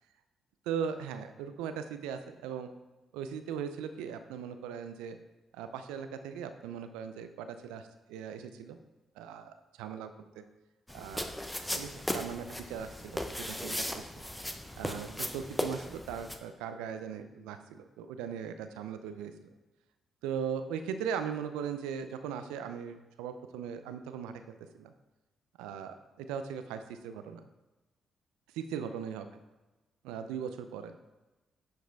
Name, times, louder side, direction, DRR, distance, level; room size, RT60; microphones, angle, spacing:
voice 1, 0.7-2.7 3.1-5.2 5.5-8.8 9.2-10.4 10.9-11.3 11.7-14.2 14.8-19.5 20.2-24.9 25.6-27.5 28.6-29.3 30.0-31.0, right 7 dB, 85° right, 9 dB, 0.5 m, -39 dB
sound 1, 10.9-16.4, left 1 dB, 10° left, 0.9 m, -37 dB
10.5 x 4.8 x 3.5 m, 1.1 s
hypercardioid pair, 45°, 0 cm